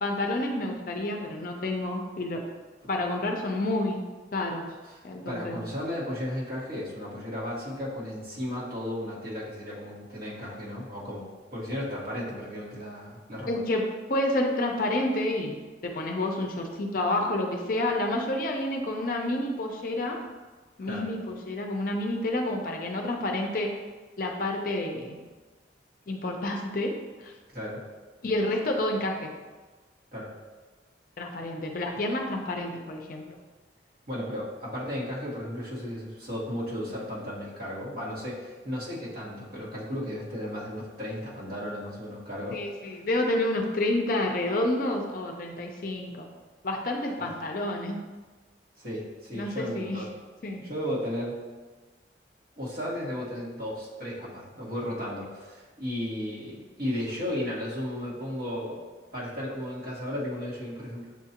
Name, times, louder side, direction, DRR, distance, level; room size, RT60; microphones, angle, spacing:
voice 1, 0.0-2.4 2.9-4.0 4.3-4.7 5.0-5.6 13.5-15.5 15.8-20.2 20.8-23.7 24.2-25.2 26.1-26.9 27.2-27.3 28.2-29.3 31.2-33.4 42.5-46.3 46.6-48.0 49.3-50.0 50.4-50.6, left 1 dB, 50° left, 2 dB, 0.5 m, -29 dB
voice 2, 4.8-13.6 20.9-21.1 27.5-27.8 30.1-30.3 34.1-42.6 42.9-43.0 47.2-47.3 48.8-50.1 50.6-51.4 52.6-58.8 59.1-61.1, left 1 dB, 50° right, -8 dB, 1.4 m, -34 dB
7.1 x 2.4 x 2.8 m, 1.3 s
head